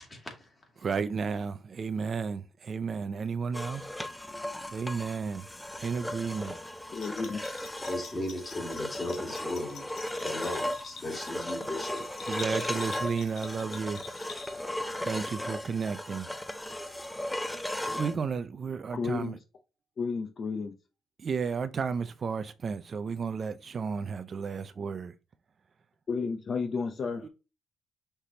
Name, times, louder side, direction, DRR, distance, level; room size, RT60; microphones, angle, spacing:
voice 1, 0.1-0.5 7.9-9.9 10.2-12.0, left 1 dB, 25° left, 2.2 m, -36 dB
voice 2, 0.8-3.9 4.7-5.5 5.8-6.6 12.2-14.0 15.0-16.3 17.9-19.4 21.2-25.1 27.2-27.3, right 5 dB, 45° right, 0.4 m, -33 dB
sound 1, 3.5-18.2, left 1 dB, 10° left, 0.6 m, -36 dB
Bell, 6.9-14.8, left 7 dB, 75° left, 0.9 m, -48 dB
voice 3, 6.9-7.4 18.9-19.4 20.0-20.7 26.1-27.3, left 5 dB, 50° left, 0.6 m, -32 dB
5.7 x 3.3 x 2.8 m
cardioid pair, 90°, 0 cm